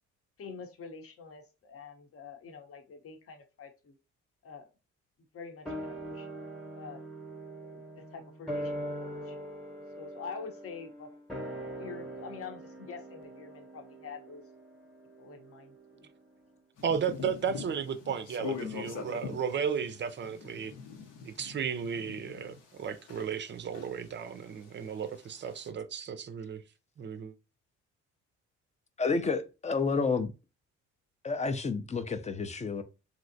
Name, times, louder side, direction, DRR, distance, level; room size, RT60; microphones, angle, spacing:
voice 1, 0.4-4.0 4.4-4.7 5.3-6.3 6.7-7.0 7.6-9.4 10.0-11.1 11.4-14.4 15.2-16.1, left 5 dB, 50° left, 0.8 m, -46 dB
sound 1, 5.7-16.3 16.5-16.6, right 1 dB, ahead, 0.9 m, -42 dB
sound 2, 16.8-23.5 23.7-25.7, left 6 dB, 80° left, 0.8 m, -43 dB
voice 2, 16.8-20.7 21.2-26.6 27.0-27.3, right 7 dB, 40° right, 0.4 m, -34 dB
voice 3, 29.0-30.3 31.2-32.8, left 4 dB, 25° left, 0.4 m, -30 dB
3.1 x 2.7 x 2.6 m
cardioid pair, 90°, 30 cm